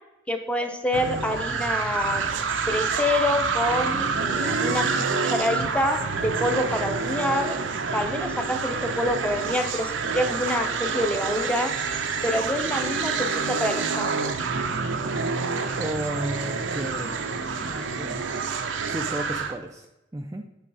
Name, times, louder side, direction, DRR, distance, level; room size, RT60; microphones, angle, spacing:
voice 1, 0.3-2.2 2.7-4.9 5.2-7.5 7.9-11.7 12.2-14.2, left 1 dB, 5° left, 4 dB, 0.7 m, -27 dB
sound 1, 0.9-19.6, right 5 dB, 70° right, 0.7 m, -27 dB
voice 2, 15.8-17.3 17.6-18.2 18.9-19.9 20.1-20.4, right 1 dB, 15° right, 3 dB, 0.4 m, -33 dB
8.5 x 4.0 x 4.8 m, 0.96 s
head